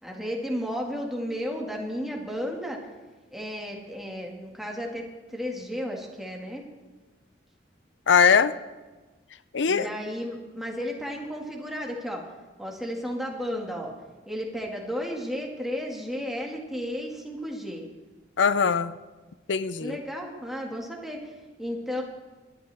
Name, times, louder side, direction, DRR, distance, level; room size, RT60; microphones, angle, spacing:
voice 1, 0.0-2.8 3.3-6.7 9.7-12.3 12.6-13.9 14.3-17.8 19.8-22.0, equal, ahead, 0 dB, 2.0 m, -33 dB
voice 2, 8.1-8.5 9.5-9.9 18.4-18.9 19.5-20.0, left 6 dB, 75° left, 14 dB, 0.6 m, -21 dB
22.0 x 11.5 x 3.5 m, 1.2 s
head